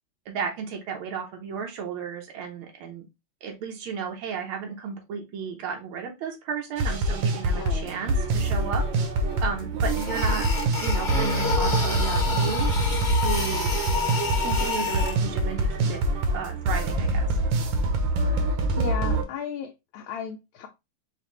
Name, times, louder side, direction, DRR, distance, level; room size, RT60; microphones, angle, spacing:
voice 1, 0.3-3.1 3.4-8.8 9.4-10.5 10.8-12.7 13.2-13.8 14.4-16.0 16.3-17.4, right 6 dB, 85° right, 1.6 m, -33 dB
sound 1, 6.8-19.2, right 2 dB, 70° right, 1.4 m, -25 dB
voice 2, 7.5-7.9 18.8-20.7, left 7 dB, 80° left, 1.5 m, -35 dB
sound 2, 9.3-9.4 9.8-15.1, left 5 dB, 25° left, 1.5 m, -29 dB
5.0 x 2.5 x 3.0 m
omnidirectional pair, 2.3 m